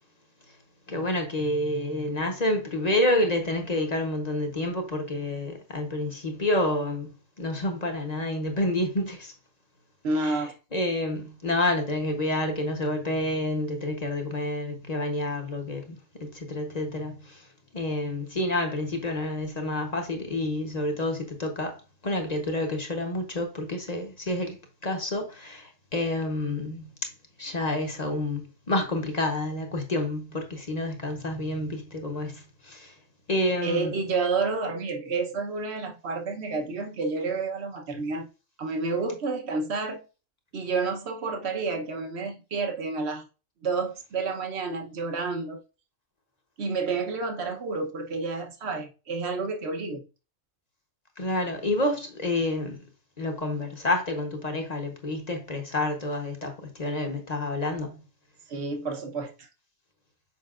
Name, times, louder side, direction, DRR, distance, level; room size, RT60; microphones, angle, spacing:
voice 1, 0.9-9.3 10.2-10.4 10.7-17.4 17.7-21.8 22.0-24.6 24.8-26.9 27.4-32.9 33.3-33.9 51.2-52.8 53.2-58.0, left 1 dB, 35° left, 1.1 m, -29 dB
voice 2, 10.0-10.5 33.6-38.3 38.6-40.0 40.5-43.3 43.6-45.6 46.6-50.1 58.5-59.5, right 4 dB, 55° right, 1.2 m, -30 dB
7.4 x 5.2 x 2.5 m
omnidirectional pair, 1.4 m